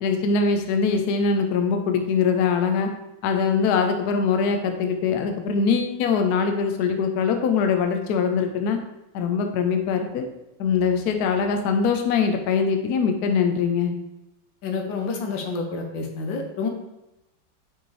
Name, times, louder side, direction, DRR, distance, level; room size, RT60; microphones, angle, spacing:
voice 1, 0.0-2.9 3.2-8.8 9.1-10.3 10.6-13.9, left 5 dB, 65° left, 6 dB, 1.1 m, -22 dB
voice 2, 14.6-16.7, left 4 dB, 90° left, 4 dB, 1.6 m, -28 dB
6.4 x 5.1 x 3.2 m, 0.93 s
omnidirectional pair, 2.0 m